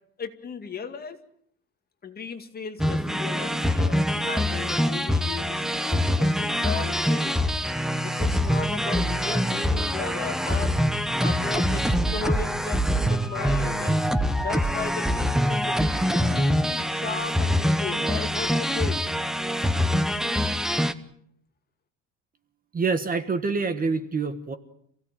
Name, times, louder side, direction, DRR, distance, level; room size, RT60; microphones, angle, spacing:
voice 1, 0.2-1.2 2.0-7.4 8.0-10.7 11.2-14.0 14.4-15.8 16.1-19.1, left 5 dB, 25° left, 6 dB, 2.2 m, -36 dB
sound 1, 2.8-20.9, equal, ahead, 1.0 m, -24 dB
voice 2, 22.7-24.6, right 4 dB, 25° right, 11 dB, 1.4 m, -26 dB
27.5 x 17.0 x 9.1 m, 0.69 s
cardioid pair, 155°, 34 cm